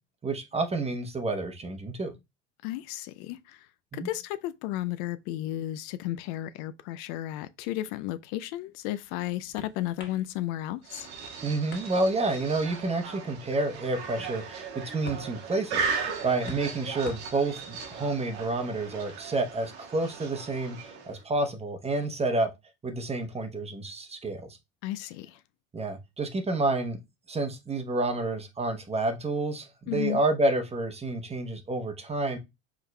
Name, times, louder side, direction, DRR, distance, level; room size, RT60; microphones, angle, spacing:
voice 1, 0.2-2.1 3.9-4.1 11.4-22.5 22.8-24.5 25.7-27.0 27.3-32.4, right 2 dB, 20° right, 0.9 m, -29 dB
voice 2, 2.6-11.1 24.8-25.4 29.9-30.2, left 14 dB, 70° left, 0.5 m, -34 dB
sound 1, 8.5-19.6, left 2 dB, 35° left, 1.6 m, -51 dB
sound 2, 10.8-21.2, right 5 dB, 80° right, 1.4 m, -37 dB
4.7 x 3.6 x 2.2 m
supercardioid pair, 90°, 31 cm